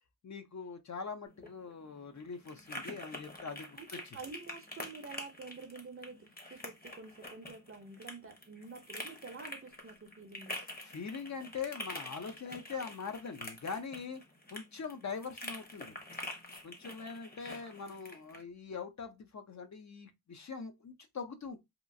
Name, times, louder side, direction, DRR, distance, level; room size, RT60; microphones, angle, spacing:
voice 1, 0.2-3.8 4.0-4.2 10.8-14.2 14.5-16.0 16.6-21.6, left 5 dB, 55° left, 0.6 m, -42 dB
Sizzling & Popping Bacon, 1.3-18.4, left 1 dB, 25° left, 0.9 m, -47 dB
voice 2, 4.1-10.6, right 4 dB, 40° right, 0.6 m, -48 dB
2.9 x 2.3 x 2.6 m
wide cardioid pair, 75°, 35 cm